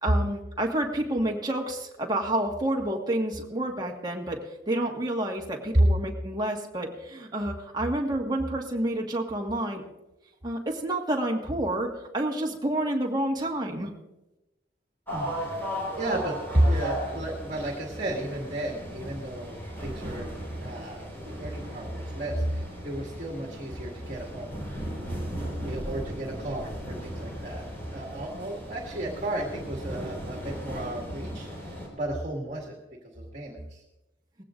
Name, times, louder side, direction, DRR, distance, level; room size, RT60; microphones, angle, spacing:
voice 1, 0.0-9.8 10.4-13.9, right 1 dB, 20° right, 0 dB, 1.7 m, -29 dB
sound 1, 15.1-31.9, equal, 10° left, 4.6 m, -37 dB
voice 2, 16.0-21.1 21.4-24.5 25.6-27.6 27.9-32.7 33.1-33.8, right 1 dB, 35° right, -1 dB, 2.0 m, -32 dB
19.5 x 16.0 x 2.6 m, 0.98 s
head